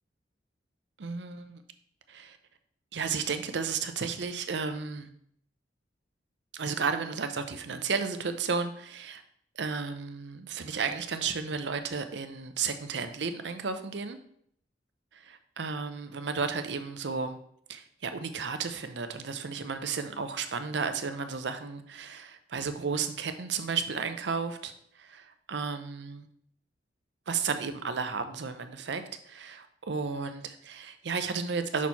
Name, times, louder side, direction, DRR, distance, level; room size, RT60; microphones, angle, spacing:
voice 1, 1.0-1.6 2.1-2.4 2.9-5.1 6.5-9.2 9.6-14.2 15.1-17.4 17.7-26.3 27.3-31.9, right 5 dB, 75° right, 0.6 m, -33 dB
6.0 x 4.4 x 4.0 m
head